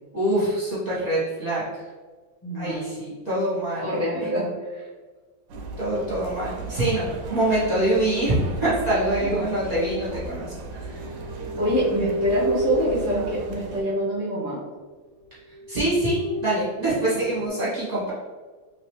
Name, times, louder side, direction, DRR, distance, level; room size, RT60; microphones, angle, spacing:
voice 1, 0.1-1.7 2.5-3.9 4.4-4.5 5.8-11.1 15.7-18.1, right 1 dB, 25° right, -11 dB, 1.2 m, -25 dB
voice 2, 2.4-2.9 3.8-4.9 9.2-9.4 11.6-14.6, equal, 15° left, -10 dB, 0.6 m, -25 dB
sound 1, 5.5-13.8, right 3 dB, 70° right, 1.1 m, -36 dB
sound 2, 10.7-14.4 14.9-15.0 15.4-17.5, right 1 dB, 90° right, 1.4 m, -32 dB
3.2 x 3.0 x 3.1 m, 1.4 s
omnidirectional pair, 2.1 m